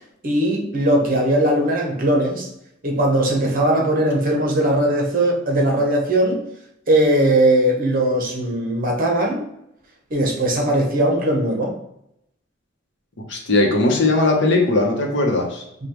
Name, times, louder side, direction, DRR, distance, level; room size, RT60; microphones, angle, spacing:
voice 1, 0.2-2.5 2.8-6.4 6.9-9.4 10.1-11.7 15.8-15.9, right 1 dB, 45° right, 0 dB, 1.0 m, -19 dB
voice 2, 13.3-15.6, left 2 dB, 65° left, 1 dB, 0.9 m, -18 dB
5.1 x 2.3 x 3.0 m, 0.78 s
head